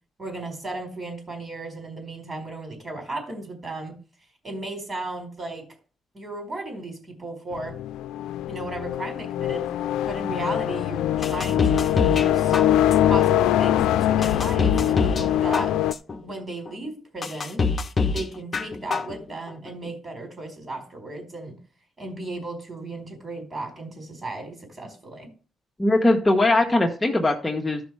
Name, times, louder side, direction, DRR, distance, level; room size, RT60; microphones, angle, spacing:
voice 1, 0.2-3.9 4.4-5.6 6.1-7.8 8.5-9.7 10.0-12.5 13.1-15.8 16.2-17.6 18.1-21.6 22.0-25.3, right 2 dB, 35° right, 4 dB, 4.4 m, -35 dB
sound 1, 7.5-15.9, left 12 dB, 90° left, 0.4 m, -23 dB
sound 2, 11.2-12.3 12.5-13.2 13.7-13.8 14.2-15.3 15.5-16.2 16.7-16.8 17.2-18.2 18.5-19.2 19.5-19.6, left 4 dB, 35° left, 0.9 m, -24 dB
voice 2, 25.8-27.8, left 2 dB, 15° left, 0 dB, 1.3 m, -20 dB
13.5 x 5.4 x 4.8 m, 0.39 s
cardioid pair, 90°, 0 cm